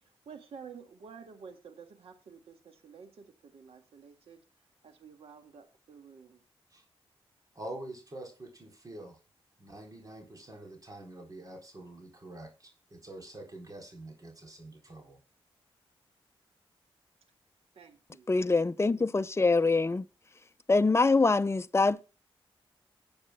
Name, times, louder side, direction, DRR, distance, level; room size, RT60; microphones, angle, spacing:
voice 1, 0.0-4.4 4.8-6.4 17.7-18.3, right 6 dB, 90° right, 2.0 m, -51 dB
voice 2, 7.6-9.2 9.6-15.2, right 1 dB, 40° right, 3.9 m, -46 dB
voice 3, 18.3-20.1 20.7-22.0, left 3 dB, 25° left, 0.7 m, -24 dB
18.0 x 8.8 x 2.3 m
cardioid pair, 65°, 10 cm